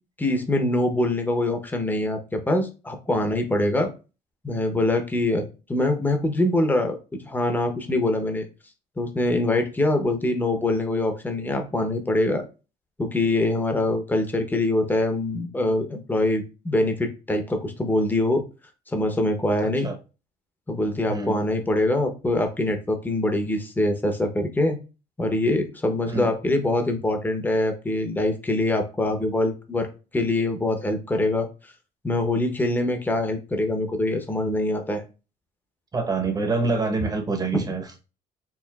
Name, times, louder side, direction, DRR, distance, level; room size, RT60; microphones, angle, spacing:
voice 1, 0.2-3.9 4.4-7.0 7.2-8.5 9.0-12.4 13.0-18.4 18.9-19.9 20.7-24.8 25.2-29.9 30.1-31.5 32.0-35.0, left 1 dB, 10° left, 0.7 m, -24 dB
voice 2, 19.6-20.0 21.1-21.4 26.1-26.3 35.9-37.9, right 4 dB, 20° right, 0.9 m, -26 dB
4.6 x 2.5 x 2.3 m
cardioid pair, 110°, 17 cm